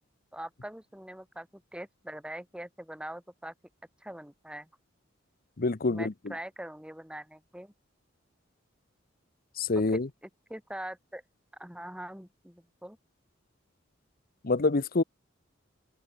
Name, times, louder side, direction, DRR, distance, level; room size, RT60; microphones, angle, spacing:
voice 1, 0.3-3.5 4.0-4.7 5.8-7.7 9.8-11.2 11.6-13.0, right 1 dB, 5° right, 4.0 m, -43 dB
voice 2, 5.6-6.1 9.6-10.1 14.4-15.0, left 3 dB, 50° left, 0.8 m, -26 dB
open air
head